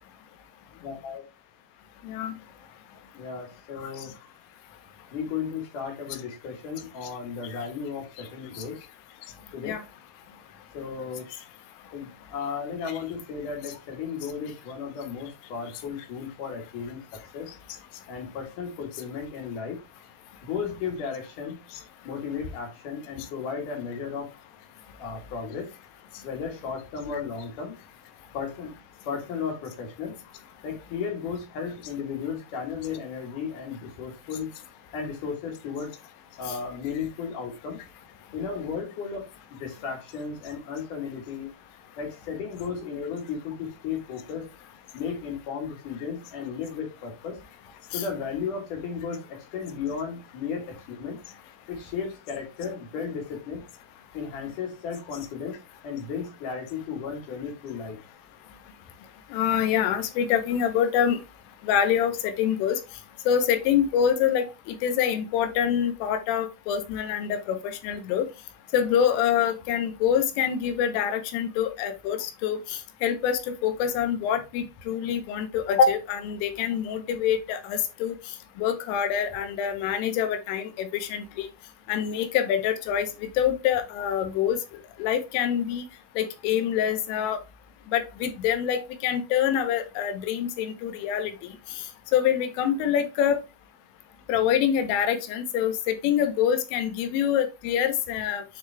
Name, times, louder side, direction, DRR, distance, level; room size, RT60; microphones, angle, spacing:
voice 1, 0.8-1.2 3.1-4.1 5.1-8.8 9.5-9.8 10.7-11.3 11.9-17.0 17.3-17.5 18.1-19.8 20.4-21.6 22.0-24.3 25.0-25.7 26.2-27.7 28.3-28.7 29.1-30.2 30.6-34.5 34.9-35.9 36.4-37.8 38.3-39.2 39.6-41.5 42.0-44.5 44.9-47.4 47.9-51.2 51.7-53.7 54.1-55.6 55.8-58.0, left 6 dB, 60° left, 2 dB, 2.3 m, -34 dB
voice 2, 2.0-2.4 3.8-3.9 7.5-7.6 8.6-8.7 9.6-9.8 36.5-36.6 47.9-48.1 59.3-61.2 61.6-62.8 63.3-68.3 68.7-81.5 81.9-84.6 85.0-85.8 86.2-87.4 87.9-93.4 94.3-98.4, left 8 dB, 80° left, 8 dB, 3.5 m, -26 dB
9.3 x 3.9 x 3.3 m, 0.25 s
omnidirectional pair, 5.8 m